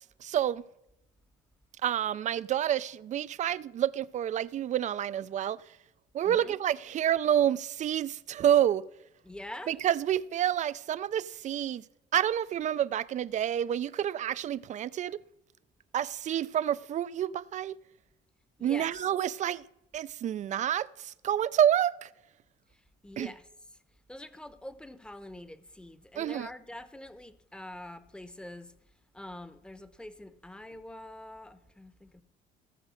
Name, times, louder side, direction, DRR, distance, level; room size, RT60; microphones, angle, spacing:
voice 1, 0.2-0.6 1.8-5.6 6.1-8.8 9.7-11.8 12.1-15.2 15.9-17.8 18.6-19.6 19.9-22.1 23.2-23.3 26.2-26.5, right 10 dB, 45° right, 0.4 m, -28 dB
voice 2, 6.2-6.5 9.2-9.8 18.6-18.9 23.0-23.5 24.1-28.7 29.1-32.2, left 1 dB, 5° left, 0.9 m, -45 dB
17.0 x 6.4 x 6.3 m
cardioid pair, 110°, 17 cm